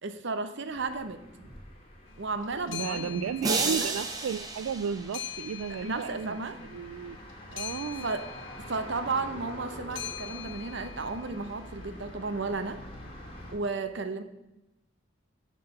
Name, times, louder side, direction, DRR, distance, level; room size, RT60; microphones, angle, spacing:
voice 1, 0.0-1.2 2.2-3.9 5.8-6.6 8.0-8.3 8.6-12.8 13.5-14.2, right 3 dB, 60° right, 9 dB, 0.8 m, -34 dB
sound 1, 0.7-13.5, left 1 dB, 30° left, 1.9 m, -46 dB
sound 2, 2.1-12.0, left 11 dB, 60° left, 0.6 m, -44 dB
voice 2, 2.7-7.2 7.5-8.1, right 7 dB, 90° right, 12 dB, 0.3 m, -34 dB
sound 3, 3.4-5.7, right 3 dB, 20° right, 0.9 m, -32 dB
11.0 x 3.8 x 6.7 m, 0.96 s
head